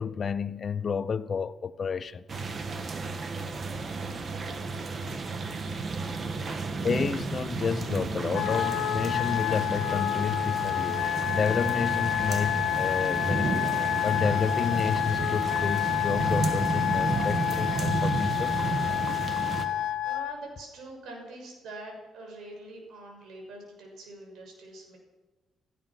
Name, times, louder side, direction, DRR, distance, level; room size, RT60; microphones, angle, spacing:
voice 1, 0.0-2.2 6.5-6.6 6.8-13.8 14.0-18.6, left 6 dB, 45° left, 0.8 m, -30 dB
sound 1, 2.3-19.7, right 4 dB, 45° right, 1.6 m, -32 dB
Wind instrument woodwind instrument, 8.3-20.4, left 12 dB, 80° left, 1.0 m, -29 dB
voice 2, 20.0-25.0, right 2 dB, 75° right, 6.6 m, -45 dB
16.5 x 14.5 x 6.0 m
cardioid pair, 90°, 0 cm